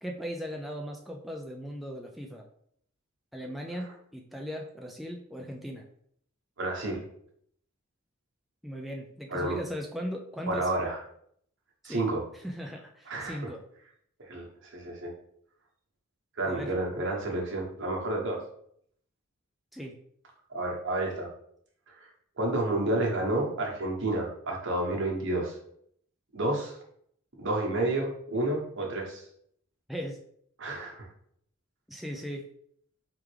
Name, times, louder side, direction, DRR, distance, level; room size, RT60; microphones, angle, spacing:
voice 1, 0.0-2.4 3.3-5.8 8.6-10.7 11.8-12.1 12.3-13.6 16.5-16.7 19.7-20.0 29.9-30.2 31.9-32.5, equal, ahead, 1 dB, 0.3 m, -38 dB
voice 2, 6.6-7.1 9.3-9.6 10.5-11.0 11.8-12.2 13.1-13.5 14.2-14.5 14.7-15.1 16.4-18.4 20.5-21.3 21.9-22.1 22.4-25.6 26.3-26.7 27.4-29.2 30.6-31.1, right 2 dB, 60° right, -1 dB, 1.2 m, -30 dB
4.4 x 3.6 x 3.3 m, 0.67 s
head